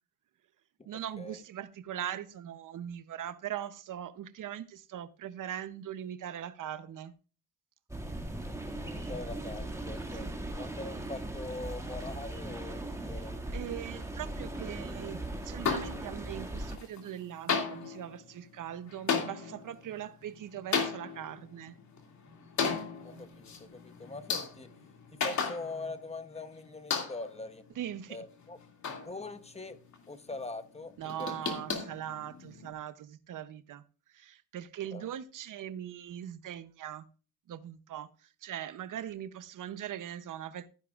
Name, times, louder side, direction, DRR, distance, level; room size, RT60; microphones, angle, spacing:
voice 1, 0.9-7.1 10.2-10.3 13.5-21.8 27.8-28.2 31.0-33.8 34.1-37.1 37.5-40.7, right 10 dB, 60° right, 0.7 m, -41 dB
sound 1, 7.9-16.8, right 1 dB, 10° right, 1.9 m, -39 dB
voice 2, 8.8-12.8 13.1-13.7 13.9-14.0 23.0-24.7 25.1-27.6 28.1-28.6 29.0-29.8 30.1-30.9 31.2-31.3 34.9-35.1, left 3 dB, 15° left, 0.8 m, -42 dB
sound 2, 15.6-16.4 16.7-17.2 17.5-26.1 26.4-26.5 26.9-27.4 27.9-29.6 29.9-30.3 30.7-32.7, left 5 dB, 50° left, 2.4 m, -35 dB
14.5 x 10.0 x 2.4 m
cardioid pair, 130°, 36 cm